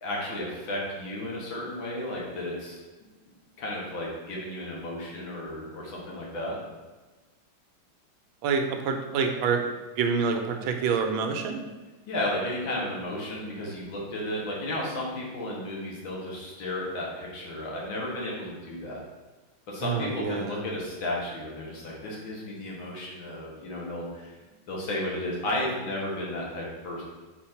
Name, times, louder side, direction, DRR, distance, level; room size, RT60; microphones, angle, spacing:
voice 1, 0.0-2.8 3.6-6.6 12.1-19.0 19.7-24.3 24.7-27.0, left 1 dB, 80° left, -3 dB, 2.3 m, -33 dB
voice 2, 8.4-11.7 19.8-20.6, right 5 dB, 85° right, 5 dB, 1.5 m, -27 dB
4.9 x 4.6 x 4.4 m, 1.2 s
omnidirectional pair, 2.1 m